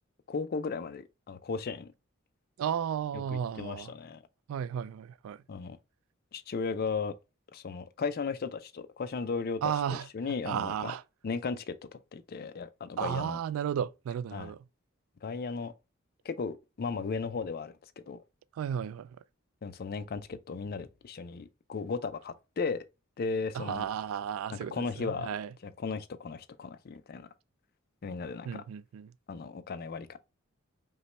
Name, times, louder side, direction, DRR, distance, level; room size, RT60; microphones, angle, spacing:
voice 1, 0.3-1.9 3.1-4.2 5.5-5.8 6.3-7.1 7.5-10.9 11.2-11.8 12.1-13.4 14.3-14.5 15.2-15.7 16.2-17.7 18.1-18.2 19.6-22.8 23.2-23.9 24.5-25.3 25.6-27.3 28.0-28.6 29.3-30.2, left 4 dB, 50° left, 0.4 m, -36 dB
voice 2, 2.6-3.9 4.5-5.4 9.6-10.1 10.5-11.0 13.0-14.6 18.6-19.1 23.5-25.5 28.5-29.1, right 8 dB, 90° right, 0.3 m, -33 dB
5.3 x 2.2 x 3.0 m
head